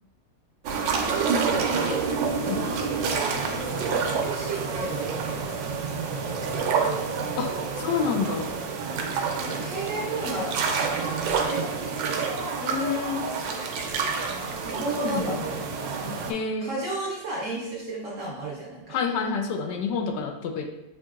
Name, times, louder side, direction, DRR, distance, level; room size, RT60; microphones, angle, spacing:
sound 1, 0.6-16.3, right 5 dB, 85° right, 1.3 m, -28 dB
voice 1, 1.0-5.4 6.5-6.8 9.4-10.5 10.9-12.3 14.6-16.3 16.6-19.0, right 3 dB, 60° right, -4 dB, 0.9 m, -34 dB
voice 2, 7.4-8.6 12.6-13.3 15.0-15.5 16.3-16.7 18.9-20.7, left 5 dB, 75° left, 4 dB, 1.2 m, -28 dB
6.2 x 2.8 x 2.3 m, 0.89 s
omnidirectional pair, 2.0 m